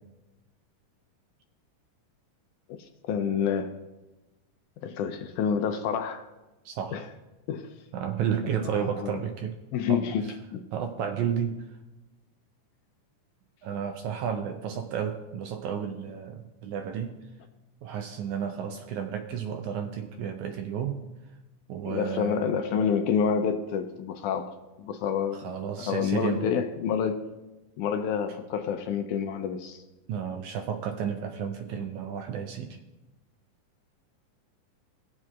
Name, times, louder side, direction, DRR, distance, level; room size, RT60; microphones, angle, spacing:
voice 1, 2.8-3.8 4.8-6.2 6.9-7.0 7.5-7.7 8.5-9.2 9.7-10.6 21.8-25.4 25.8-27.2 27.8-29.8, left 7 dB, 80° left, 7 dB, 1.9 m, -28 dB
voice 2, 6.7-7.1 7.9-9.6 9.9-11.7 13.6-17.2 17.8-21.0 21.7-22.6 25.3-26.5 30.1-32.8, right 8 dB, 80° right, 6 dB, 1.8 m, -32 dB
18.5 x 7.5 x 2.4 m, 1.0 s
omnidirectional pair, 3.8 m